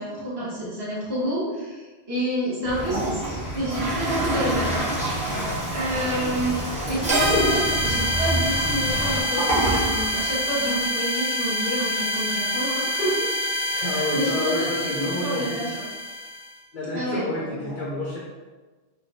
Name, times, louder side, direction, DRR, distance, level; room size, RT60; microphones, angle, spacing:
voice 1, 0.0-4.9 5.7-6.5 6.9-13.2 13.7-15.7 16.9-17.7, right 1 dB, 25° right, -10 dB, 1.0 m, -29 dB
sound 1, 2.6-9.2, equal, 85° left, 1.0 m, -31 dB
Toilet flush, 2.7-10.9, right 1 dB, 5° right, 0.7 m, -28 dB
sound 2, 7.1-16.5, equal, 75° right, 0.9 m, -26 dB
voice 2, 13.8-15.7 16.7-18.2, left 2 dB, 60° left, -5 dB, 0.7 m, -29 dB
3.4 x 2.2 x 2.6 m, 1.3 s
omnidirectional pair, 1.1 m